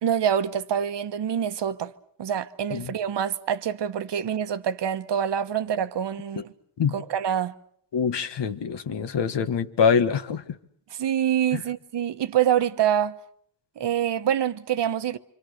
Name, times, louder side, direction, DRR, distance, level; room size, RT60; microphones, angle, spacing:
voice 1, 0.0-1.9 2.2-6.5 6.9-7.5 10.9-13.2 13.8-15.2, right 9 dB, 60° right, 1.1 m, -26 dB
voice 2, 7.9-10.4 11.5-11.6, left 6 dB, 65° left, 1.6 m, -24 dB
27.0 x 25.5 x 6.6 m
cardioid pair, 85°, 46 cm